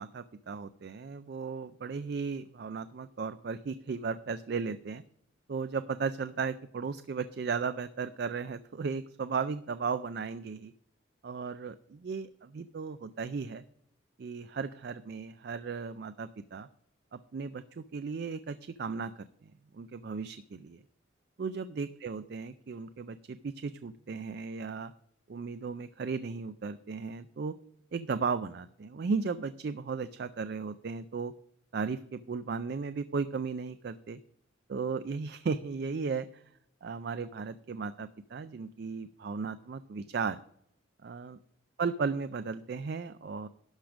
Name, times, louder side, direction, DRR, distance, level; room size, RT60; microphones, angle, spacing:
voice 1, 0.0-5.0 5.5-10.7 11.2-13.6 14.2-16.7 17.1-20.8 21.4-24.9 25.3-27.6 27.9-31.3 31.7-34.2 34.7-36.4 36.8-40.4 41.0-41.4 41.8-43.5, right 5 dB, 50° right, 12 dB, 0.4 m, -35 dB
12.0 x 5.1 x 6.2 m, 0.71 s
head